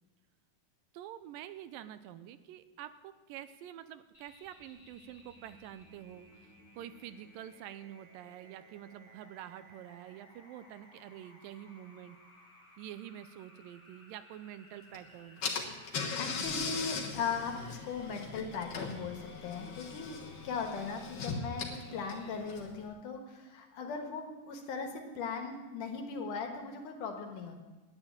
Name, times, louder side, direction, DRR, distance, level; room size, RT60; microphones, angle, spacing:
voice 1, 0.9-12.2 12.8-15.4, right 11 dB, 85° right, 12 dB, 2.3 m, -47 dB
sound 1, 4.1-22.3, left 1 dB, 10° left, 1.7 m, -59 dB
Car / Engine, 14.9-15.0 15.4-22.8, left 4 dB, 50° left, 1.5 m, -39 dB
voice 2, 16.2-20.2 20.4-24.9 25.1-27.6, left 5 dB, 70° left, 4 dB, 2.7 m, -38 dB
9.9 x 9.8 x 8.9 m, 1.2 s
omnidirectional pair, 4.0 m